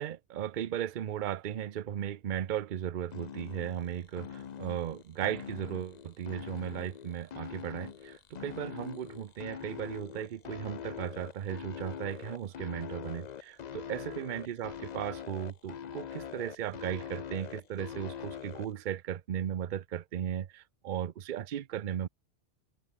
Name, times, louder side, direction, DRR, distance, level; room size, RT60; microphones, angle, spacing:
voice 1, 0.0-22.1, right 10 dB, 50° right, 0.7 m, -36 dB
sound 1, 3.1-18.7, left 8 dB, 45° left, 0.6 m, -43 dB
omnidirectional pair, 1.2 m